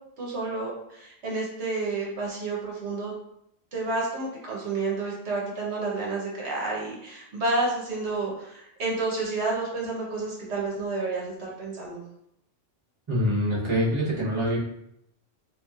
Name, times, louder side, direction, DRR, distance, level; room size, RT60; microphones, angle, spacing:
voice 1, 0.2-3.1 3.7-12.0, right 3 dB, 65° right, -3 dB, 1.1 m, -30 dB
voice 2, 13.1-14.6, equal, 25° right, -6 dB, 0.8 m, -25 dB
3.4 x 3.0 x 2.3 m, 0.78 s
omnidirectional pair, 1.3 m